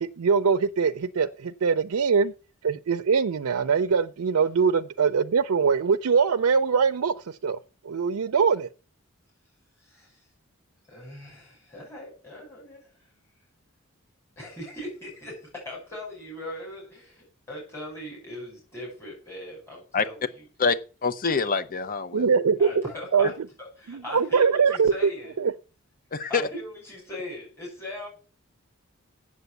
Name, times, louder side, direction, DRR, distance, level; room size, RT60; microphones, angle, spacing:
voice 1, 0.0-2.3 2.6-7.6 7.8-8.7 22.1-22.8 23.1-23.3 23.9-25.1 25.4-25.5, right 5 dB, 80° right, 0.5 m, -22 dB
voice 2, 9.9-10.2 10.9-12.9 14.4-20.4 22.6-23.3 23.6-25.3 26.3-28.1, left 1 dB, 10° left, 5.8 m, -39 dB
voice 3, 20.6-22.3 26.1-26.4, left 5 dB, 40° left, 0.7 m, -26 dB
8.1 x 7.3 x 8.0 m
head